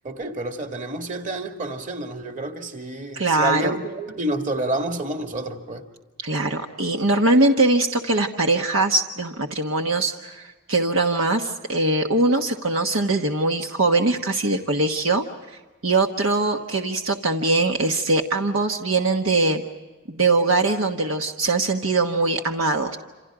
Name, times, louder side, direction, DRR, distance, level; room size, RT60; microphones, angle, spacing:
voice 1, 0.0-5.8, right 2 dB, 35° right, 2.2 m, -29 dB
voice 2, 3.1-3.8 6.2-15.2 15.8-19.6 20.1-23.0, right 2 dB, 70° right, 1.3 m, -22 dB
28.5 x 27.0 x 5.0 m
head